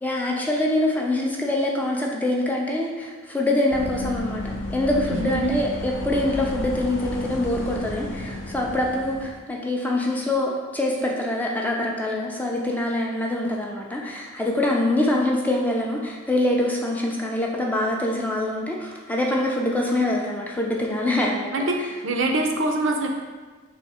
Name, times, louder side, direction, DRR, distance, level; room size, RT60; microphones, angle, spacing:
voice 1, 0.0-21.5, left 1 dB, 10° left, -1 dB, 0.4 m, -24 dB
sound 1, 3.7-9.3, left 2 dB, 65° left, 0.5 m, -32 dB
voice 2, 5.1-5.6 21.5-23.1, right 2 dB, 65° right, 2 dB, 0.5 m, -24 dB
3.5 x 2.8 x 4.1 m, 1.4 s
head